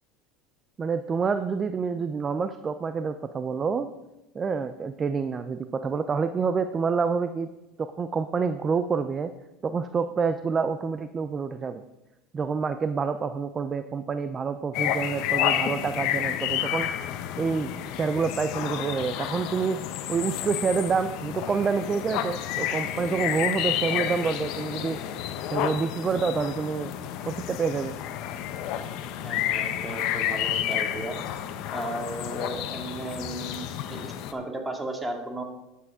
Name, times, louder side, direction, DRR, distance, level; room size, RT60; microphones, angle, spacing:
voice 1, 0.8-3.9 4.3-7.5 7.8-9.3 9.6-11.8 12.3-16.9 17.4-19.8 20.1-25.0 25.5-26.9 27.3-27.9, right 5 dB, 30° right, 10 dB, 0.6 m, -27 dB
sound 1, 14.7-34.3, left 11 dB, 65° left, 0.9 m, -30 dB
voice 2, 29.2-31.2 31.7-35.4, right 1 dB, 15° right, 2 dB, 2.2 m, -35 dB
12.5 x 8.5 x 3.7 m, 0.95 s
hypercardioid pair, 90°, 0 cm